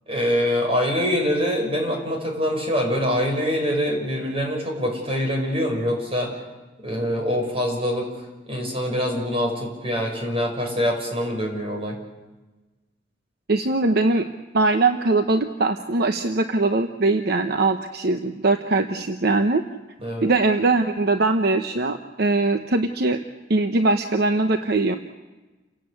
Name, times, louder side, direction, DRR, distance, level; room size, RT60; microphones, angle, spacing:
voice 1, 0.1-6.3 6.8-8.1 8.5-12.0 20.0-20.3, equal, 35° right, 2 dB, 5.9 m, -24 dB
voice 2, 13.5-14.3 14.5-19.6 20.2-23.2 23.5-25.0, right 2 dB, 60° right, 7 dB, 1.0 m, -21 dB
29.0 x 17.0 x 8.4 m, 1.2 s
head